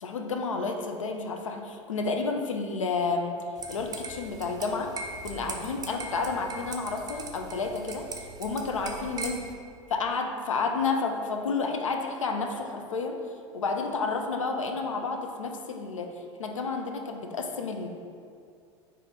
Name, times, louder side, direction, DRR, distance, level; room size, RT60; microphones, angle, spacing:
voice 1, 0.0-3.4 3.7-4.9 5.2-8.1 8.4-9.4 9.9-13.2 13.5-16.1 16.4-17.9, left 4 dB, 85° left, 3 dB, 0.4 m, -30 dB
sound 1, 3.6-9.5, right 4 dB, 25° right, 0.5 m, -40 dB
3.9 x 2.7 x 4.7 m, 2.3 s
figure-of-eight pair, 80°, 16 cm